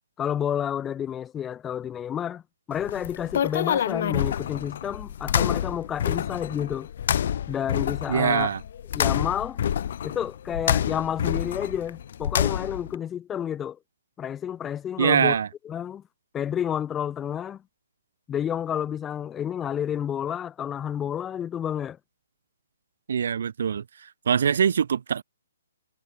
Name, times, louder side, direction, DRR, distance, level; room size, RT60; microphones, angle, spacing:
voice 1, 0.2-2.4 2.7-6.9 7.5-8.5 8.9-9.6 10.0-13.8 14.2-15.4 15.6-16.0 16.3-17.6 18.3-22.0, left 9 dB, 10° left, 1.6 m, -30 dB
sound 1, 2.7-12.9, left 9 dB, 40° left, 0.7 m, -28 dB
voice 2, 8.1-8.6 15.0-15.5 23.1-23.8 24.3-25.2, right 7 dB, 55° right, 1.4 m, -23 dB
hypercardioid pair, 170°, 0 cm